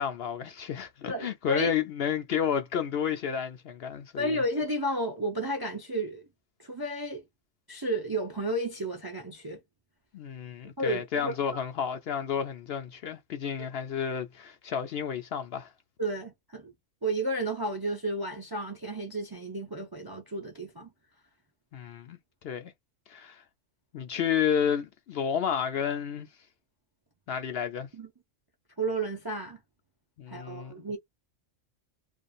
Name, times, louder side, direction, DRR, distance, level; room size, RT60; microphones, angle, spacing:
voice 1, 0.0-4.4 10.1-15.7 21.7-22.2 22.4-22.7 23.1-23.4 23.9-26.3 27.3-27.9 30.2-31.0, left 8 dB, 65° left, 0.7 m, -31 dB
voice 2, 1.1-1.7 4.2-6.3 6.6-7.2 7.7-9.6 10.8-11.7 16.0-16.7 17.0-20.9 27.9-28.1 28.8-29.6 30.3-31.0, right 1 dB, 30° right, 0.4 m, -32 dB
2.5 x 2.3 x 2.5 m
omnidirectional pair, 1.3 m